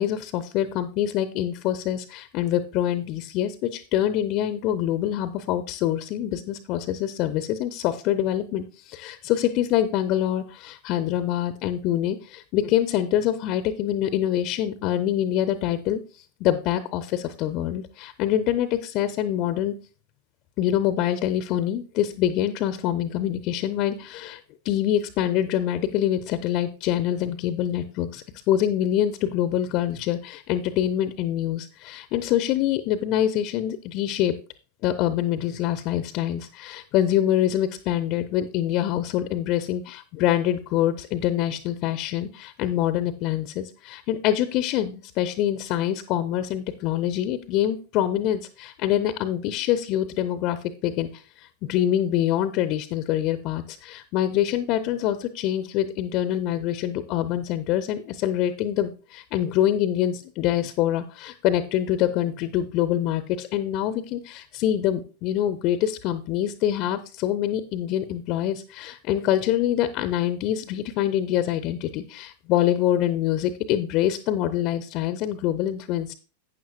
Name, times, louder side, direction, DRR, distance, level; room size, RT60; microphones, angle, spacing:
voice 1, 0.0-16.0 16.4-19.7 20.6-24.4 24.6-34.3 34.8-76.1, left 11 dB, 40° left, 12 dB, 0.7 m, -25 dB
12.0 x 9.0 x 2.3 m, 0.34 s
figure-of-eight pair, 90°, 0 cm